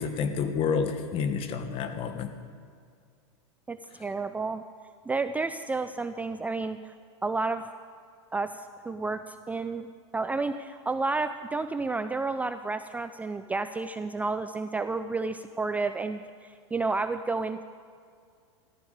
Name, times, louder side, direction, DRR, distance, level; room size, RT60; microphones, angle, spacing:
voice 1, 0.0-2.3, left 6 dB, 40° left, 8 dB, 1.3 m, -29 dB
voice 2, 3.7-4.6 5.1-6.9 7.2-7.6 8.3-9.9 10.1-17.6, right 3 dB, 10° right, 10 dB, 0.4 m, -31 dB
14.0 x 13.0 x 5.0 m, 2.2 s
hypercardioid pair, 115°, 15 cm